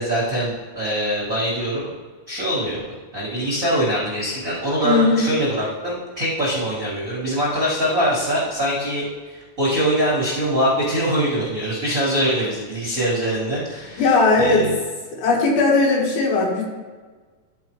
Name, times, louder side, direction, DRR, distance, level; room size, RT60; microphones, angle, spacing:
voice 1, 0.0-1.9 2.3-2.8 3.1-14.0 14.4-14.8, equal, 65° right, -7 dB, 0.8 m, -23 dB
voice 2, 4.8-5.2 14.0-14.6 15.2-16.6, left 3 dB, 70° left, -3 dB, 3.2 m, -18 dB
12.5 x 4.4 x 3.1 m, 1.4 s
omnidirectional pair, 4.5 m